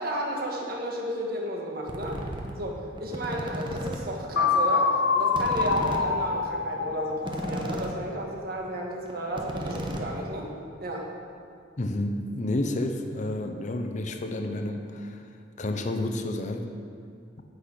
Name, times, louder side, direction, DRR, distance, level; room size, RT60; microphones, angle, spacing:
voice 1, 0.0-2.2 2.6-10.5 10.8-11.1, right 1 dB, 55° right, -1 dB, 1.7 m, -33 dB
sound 1, 1.9-2.5 3.0-4.0 4.3-4.4 4.6-4.7 4.9-5.0 5.3-8.0 8.3-8.5 8.8-8.9 9.1-10.5, right 1 dB, 25° right, 1.0 m, -34 dB
sound 2, 4.4-8.2, left 5 dB, 75° left, 0.6 m, -26 dB
voice 2, 11.8-15.2 15.6-16.6, left 1 dB, 40° left, 5 dB, 0.7 m, -30 dB
10.0 x 6.4 x 8.6 m, 2.3 s
head